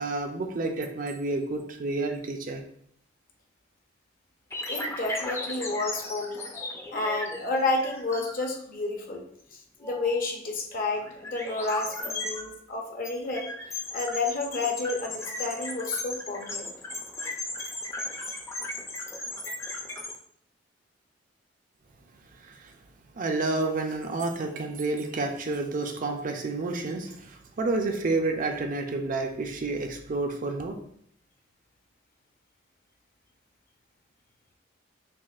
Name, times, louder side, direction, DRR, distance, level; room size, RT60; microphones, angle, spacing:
voice 1, 0.0-2.6 22.5-22.7 23.2-30.8, right 3 dB, 45° right, 4 dB, 0.5 m, -30 dB
sound 1, 4.5-8.6 9.1-9.2 9.8-10.2 11.0-12.4 13.0-20.2, left 2 dB, 15° left, 0.5 m, -36 dB
voice 2, 4.7-6.5 6.9-9.2 9.8-13.5 13.9-16.7, left 3 dB, 50° left, 2 dB, 0.7 m, -30 dB
6.0 x 2.4 x 2.4 m, 0.65 s
head